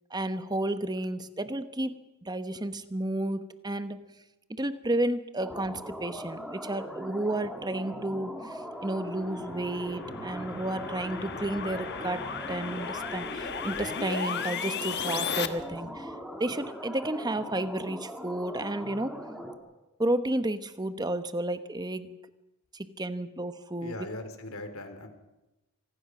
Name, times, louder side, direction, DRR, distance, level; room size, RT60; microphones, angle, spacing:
voice 1, 0.1-4.2 4.5-16.1 16.4-19.2 20.0-22.2 22.7-24.0, right 1 dB, 20° right, 11 dB, 1.0 m, -32 dB
sound 1, 5.4-19.6, equal, ahead, 2.3 m, -40 dB
sound 2, 8.9-15.5, left 6 dB, 50° left, 1.3 m, -35 dB
voice 2, 23.8-25.1, left 2 dB, 70° left, 8 dB, 3.1 m, -39 dB
26.0 x 19.0 x 6.1 m, 0.99 s
head